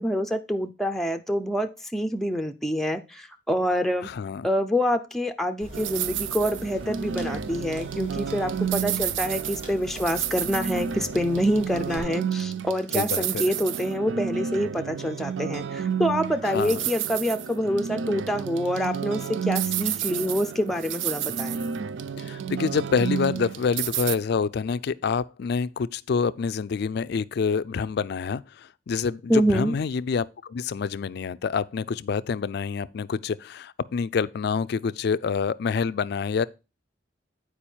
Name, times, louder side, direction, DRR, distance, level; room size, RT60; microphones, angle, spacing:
voice 1, 0.0-4.1 4.4-21.6 29.3-29.7, equal, ahead, 0.5 m, -26 dB
voice 2, 4.0-4.5 12.9-13.4 16.4-16.8 22.2-36.4, left 5 dB, 60° left, 0.4 m, -27 dB
sound 1, 5.6-12.0, equal, 30° right, 3.1 m, -44 dB
sound 2, 5.7-24.1, right 8 dB, 80° right, 0.4 m, -30 dB
8.6 x 4.8 x 4.4 m
head